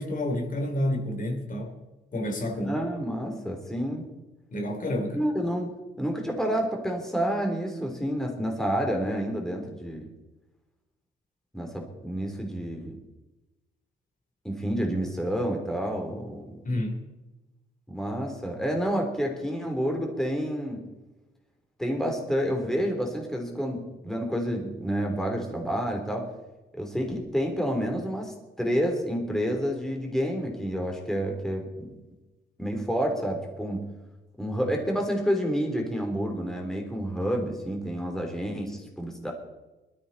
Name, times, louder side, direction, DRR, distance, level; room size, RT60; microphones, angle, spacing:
voice 1, 0.0-1.7 2.1-2.8 4.5-5.2 16.6-17.0, left 1 dB, 40° left, 2 dB, 3.5 m, -29 dB
voice 2, 2.6-4.0 5.2-10.1 11.5-12.9 14.4-16.6 17.9-20.9 21.8-26.3 26.7-31.9 32.6-33.9 34.4-39.3, equal, ahead, 1 dB, 3.5 m, -29 dB
20.0 x 13.5 x 4.2 m, 1.1 s
cardioid pair, 90°, 20 cm